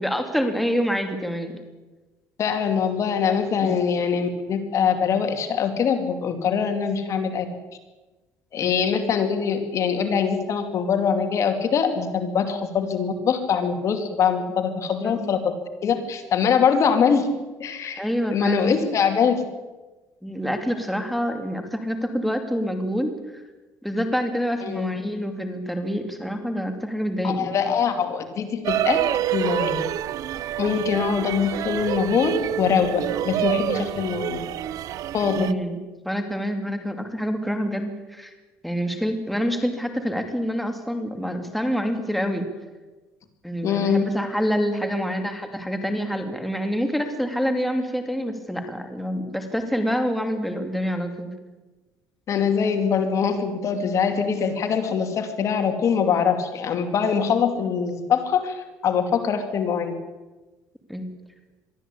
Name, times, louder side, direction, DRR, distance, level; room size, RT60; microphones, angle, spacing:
voice 1, 0.0-1.5 3.6-3.8 8.6-8.9 15.0-15.3 18.0-18.9 20.2-23.4 23.8-27.6 35.3-35.8 36.0-38.3 38.6-42.4 43.4-51.3 60.9-61.1, equal, ahead, 5 dB, 2.7 m, -27 dB
voice 2, 2.4-7.5 8.5-15.4 15.8-17.3 17.6-18.0 18.3-19.4 24.6-24.9 27.2-29.0 29.3-29.8 30.6-34.4 35.1-35.5 43.6-44.1 52.3-59.9, left 6 dB, 50° left, 7 dB, 2.6 m, -23 dB
sound 1, 28.6-35.5, right 12 dB, 65° right, 0.8 m, -27 dB
22.5 x 13.5 x 8.5 m, 1.2 s
cardioid pair, 110°, 7 cm